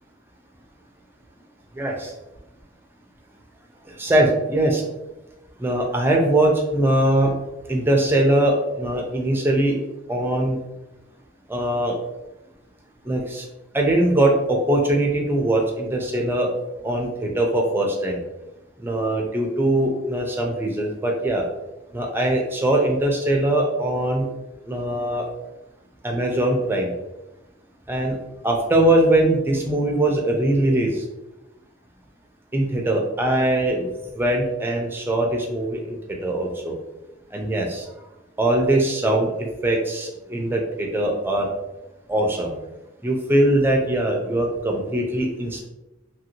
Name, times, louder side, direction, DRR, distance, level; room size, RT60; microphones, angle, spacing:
voice 1, 1.8-2.1 4.0-4.8 5.6-7.3 7.7-9.8 10.1-10.6 11.5-11.9 13.1-13.4 13.7-16.5 16.8-18.2 18.8-21.4 21.9-24.3 24.7-25.2 26.0-26.9 27.9-28.2 28.4-30.9 32.5-33.9 34.2-36.0 36.2-36.7 37.3-37.8 38.4-39.3 39.6-41.5 42.1-42.5 43.0-45.7, right 1 dB, 10° right, 1 dB, 0.4 m, -21 dB
2.9 x 2.6 x 2.9 m, 0.98 s
head